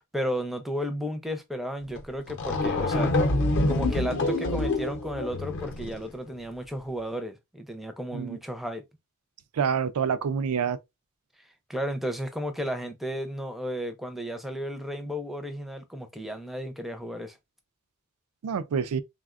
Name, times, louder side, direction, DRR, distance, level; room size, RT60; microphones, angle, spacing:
voice 1, 0.0-3.2 3.7-8.8 11.7-17.4, equal, ahead, 0.4 m, -33 dB
sound 1, 2.0-2.1 2.3-6.1, left 2 dB, 60° left, 0.6 m, -26 dB
voice 2, 9.5-10.8 18.4-19.0, right 6 dB, 90° right, 0.4 m, -27 dB
3.4 x 2.1 x 2.4 m
head